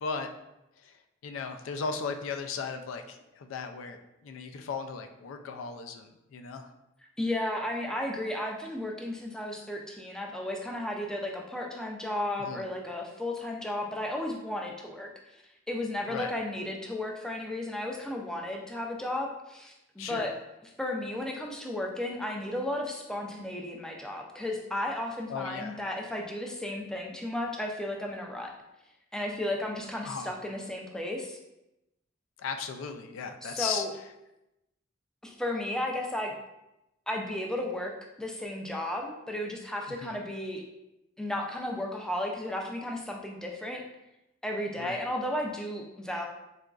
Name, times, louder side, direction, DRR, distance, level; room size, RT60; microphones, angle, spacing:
voice 1, 1.2-6.7 12.4-12.6 16.1-16.3 20.0-20.3 25.3-25.8 30.0-30.4 32.4-33.8 39.9-40.2 44.8-45.0, left 5 dB, 90° left, 7 dB, 0.3 m, -36 dB
voice 2, 7.2-15.4 15.7-20.3 20.8-28.5 29.1-31.4 33.4-33.9 35.2-36.3 37.1-40.7 41.2-43.8 44.4-46.3, left 1 dB, 5° left, 0 dB, 0.3 m, -34 dB
3.8 x 2.4 x 2.3 m, 0.91 s
head